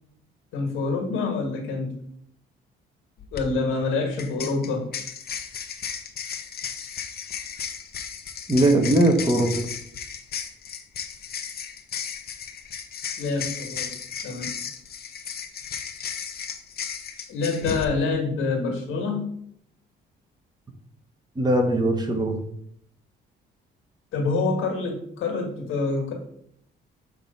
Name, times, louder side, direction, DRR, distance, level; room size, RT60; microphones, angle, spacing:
voice 1, 0.5-1.9 3.3-4.9 13.2-13.9 14.2-14.5 17.3-19.3 24.1-26.1, left 3 dB, 90° left, 2 dB, 1.7 m, -26 dB
sound 1, 3.2-3.4 4.2-17.8, left 7 dB, 50° left, 0.8 m, -35 dB
voice 2, 8.5-9.6 21.3-22.4, right 1 dB, 20° right, 4 dB, 1.4 m, -20 dB
6.6 x 3.2 x 5.4 m, 0.69 s
cardioid pair, 90°, 20 cm